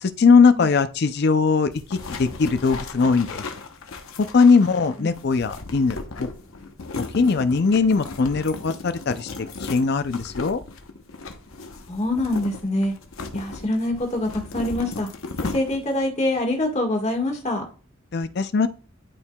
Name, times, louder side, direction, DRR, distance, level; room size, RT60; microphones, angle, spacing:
voice 1, 0.0-3.4 4.2-6.3 7.0-10.6 18.1-18.7, left 4 dB, 55° left, 0.5 m, -20 dB
sound 1, 1.7-16.0, left 3 dB, 90° left, 0.9 m, -36 dB
voice 2, 4.6-5.1 11.9-12.9 13.3-15.1 15.4-17.6, left 1 dB, 35° left, 1.6 m, -25 dB
12.0 x 4.6 x 2.3 m
head